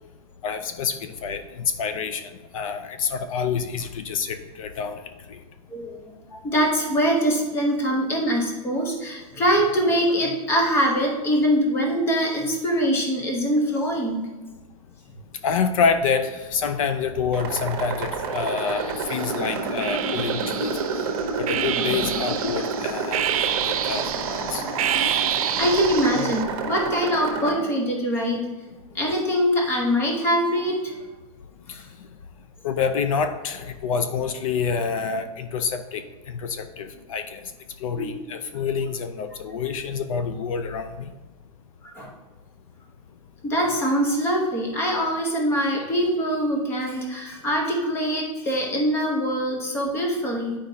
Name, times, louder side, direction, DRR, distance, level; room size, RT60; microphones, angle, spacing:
voice 1, 0.4-2.2 2.5-5.0 5.3-5.4 15.4-20.8 21.4-23.3 23.7-24.6 31.7-31.8 32.6-36.0 36.3-37.4 37.8-41.1, left 6 dB, 65° left, 10 dB, 0.5 m, -27 dB
voice 2, 5.7-14.3 24.7-28.5 28.9-31.0 31.7-31.8 38.0-38.2 41.8-42.1 43.4-50.6, equal, 15° left, 1 dB, 0.8 m, -23 dB
sound 1, 17.3-27.5, right 4 dB, 40° right, 1.1 m, -29 dB
sound 2, 18.4-19.2 19.8-26.4, right 10 dB, 75° right, 0.6 m, -28 dB
9.5 x 5.1 x 2.7 m, 1.2 s
supercardioid pair, 175°, 19 cm